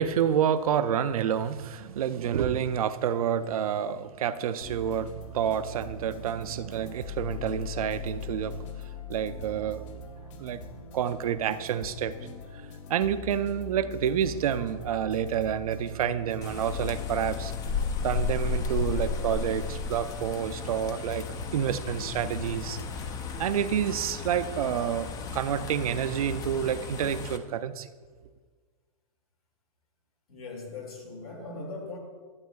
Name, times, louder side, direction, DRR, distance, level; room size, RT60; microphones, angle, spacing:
voice 1, 0.0-8.7 9.1-9.8 10.4-10.6 10.9-12.1 12.9-17.5 18.0-21.3 21.5-22.8 23.4-27.9, right 9 dB, 75° right, 0.5 m, -28 dB
sound 1, 4.6-23.8, left 4 dB, 55° left, 0.8 m, -41 dB
sound 2, 16.4-27.4, left 5 dB, 20° left, 0.4 m, -34 dB
voice 2, 30.3-32.0, left 3 dB, 85° left, 2.1 m, -40 dB
12.0 x 8.2 x 2.3 m
hypercardioid pair, 135°, 19 cm